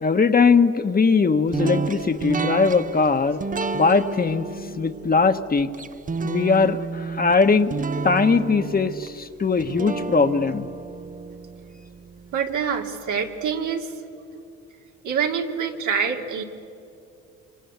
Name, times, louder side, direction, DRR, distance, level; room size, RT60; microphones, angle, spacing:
voice 1, 0.0-3.4 3.7-4.5 4.8-5.7 6.2-10.7, left 4 dB, 30° left, 8 dB, 1.3 m, -20 dB
sound 1, 1.5-12.6, right 4 dB, 25° right, 0.7 m, -31 dB
voice 2, 12.3-13.9 15.0-16.4, right 6 dB, 80° right, 2 dB, 2.7 m, -26 dB
27.0 x 25.5 x 8.2 m, 2.6 s
cardioid pair, 90°, 30 cm